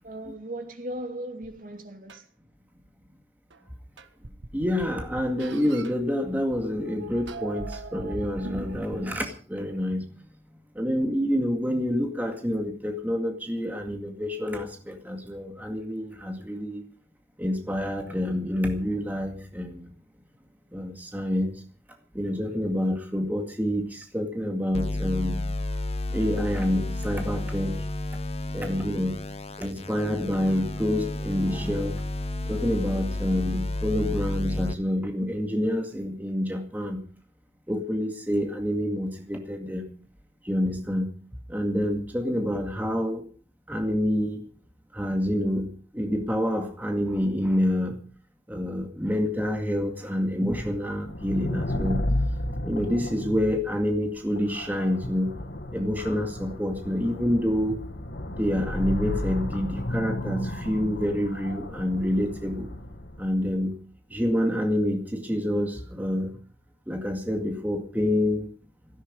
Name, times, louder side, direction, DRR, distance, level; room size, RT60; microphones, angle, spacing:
voice 1, 0.0-2.2, right 1 dB, 45° right, 2.8 m, -37 dB
sound 1, 1.4-1.5 2.1-2.2 3.5-3.6 4.0-5.9 6.8-9.4, right 2 dB, 75° right, 1.6 m, -40 dB
voice 2, 4.5-10.1 10.7-16.8 17.4-19.9 20.7-21.6 22.1-25.5 26.1-27.9 28.5-29.2 29.6-32.0 32.5-37.0 37.7-39.9 40.4-41.1 41.5-43.3 43.7-44.4 44.9-48.0 48.5-52.0 52.6-55.3 55.7-57.8 58.3-62.7 63.2-63.7 64.1-66.4 66.9-68.5, equal, 10° right, 2.1 m, -27 dB
sound 2, 24.7-34.7, left 2 dB, 30° left, 1.2 m, -31 dB
sound 3, 50.9-63.5, left 1 dB, 60° left, 1.8 m, -33 dB
17.0 x 15.0 x 5.2 m
head